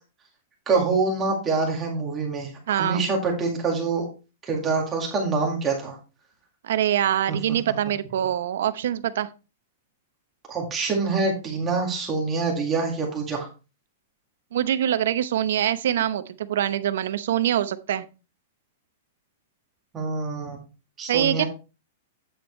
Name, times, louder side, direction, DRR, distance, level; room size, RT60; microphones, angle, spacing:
voice 1, 0.7-2.5 2.8-4.1 4.4-6.0 7.3-7.4 10.5-13.5 19.9-20.6 21.0-21.5, right 4 dB, 15° right, 0 dB, 2.0 m, -25 dB
voice 2, 2.7-3.0 6.6-9.3 14.5-18.0 21.1-21.4, right 11 dB, 65° right, 13 dB, 0.8 m, -24 dB
8.9 x 7.4 x 3.2 m, 0.31 s
supercardioid pair, 170°, 0 cm